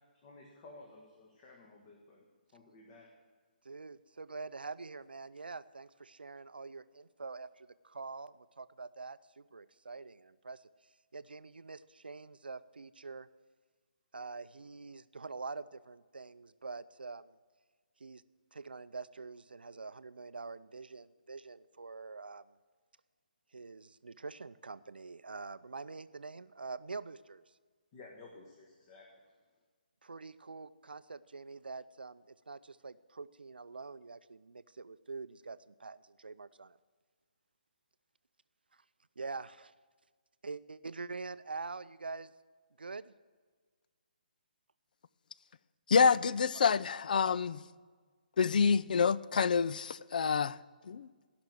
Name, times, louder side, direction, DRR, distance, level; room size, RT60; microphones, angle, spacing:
voice 1, 0.1-3.1 27.9-29.2, left 3 dB, 35° left, 1.6 m, -55 dB
voice 2, 3.6-10.7 11.1-13.3 14.1-17.3 18.0-18.2 18.5-22.5 23.5-27.4 30.0-36.8 38.7-38.8 39.2-39.7 40.4-42.3 42.8-43.1, right 4 dB, 85° right, 0.5 m, -45 dB
voice 3, 45.9-47.7 48.4-51.1, left 6 dB, 60° left, 0.4 m, -28 dB
15.0 x 6.0 x 7.9 m
figure-of-eight pair, 145°, 5 cm